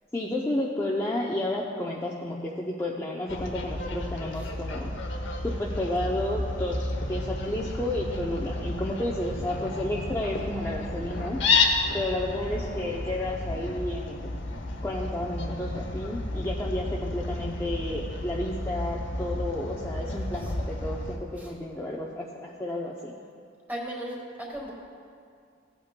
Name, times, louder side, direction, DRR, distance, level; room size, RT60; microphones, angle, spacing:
voice 1, 0.1-4.9 5.4-11.4 11.9-14.2 14.8-23.1, left 1 dB, 15° left, -4 dB, 0.5 m, -31 dB
Fowl, 3.3-21.2, left 3 dB, 65° left, 0.8 m, -31 dB
voice 2, 20.1-20.6 21.4-21.5 23.7-24.7, right 1 dB, 10° right, -3 dB, 1.7 m, -38 dB
16.5 x 8.5 x 2.2 m, 2.3 s
head